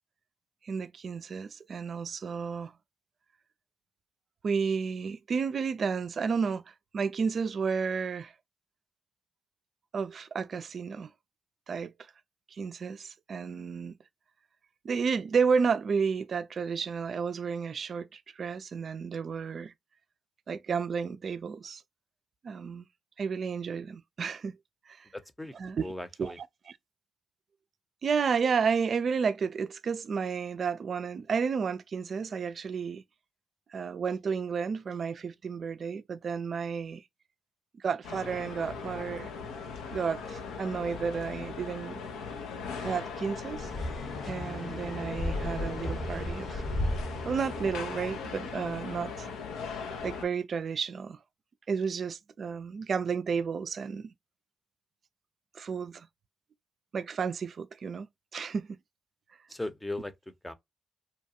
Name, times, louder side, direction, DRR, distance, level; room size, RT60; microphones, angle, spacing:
voice 1, 0.6-2.7 4.4-8.3 9.9-11.1 11.7-11.9 12.5-13.9 14.8-19.7 20.5-21.8 22.4-22.9 23.2-24.6 24.9-25.1 25.6-25.8 26.2-26.5 28.0-33.0 33.7-37.0 37.8-39.3 39.9-42.0 42.8-43.7 44.2-46.6 47.2-49.3 50.0-51.2 51.7-54.1 55.5-56.1 56.9-58.1 58.3-58.8, right 6 dB, 60° right, 0.3 m, -32 dB
voice 2, 25.1-25.5 25.8-26.4 59.5-60.5, left 1 dB, 15° left, 0.7 m, -38 dB
sound 1, 38.0-50.2, left 5 dB, 85° left, 0.6 m, -39 dB
sound 2, 43.5-48.4, left 1 dB, 65° left, 1.2 m, -35 dB
2.8 x 2.2 x 2.7 m
supercardioid pair, 45°, 0 cm